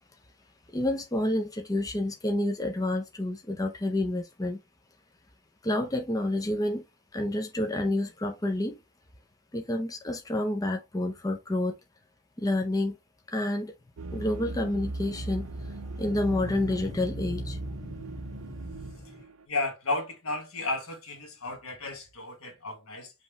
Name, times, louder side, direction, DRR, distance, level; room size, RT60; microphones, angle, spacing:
voice 1, 0.7-4.6 5.6-6.8 7.1-8.8 9.5-11.7 12.4-13.0 13.3-13.7 14.1-19.0, left 1 dB, 15° left, 0.6 m, -29 dB
sound 1, 14.0-19.5, right 2 dB, 70° right, 0.6 m, -38 dB
voice 2, 19.5-23.1, left 2 dB, 75° left, 1.4 m, -33 dB
5.2 x 3.0 x 3.2 m
head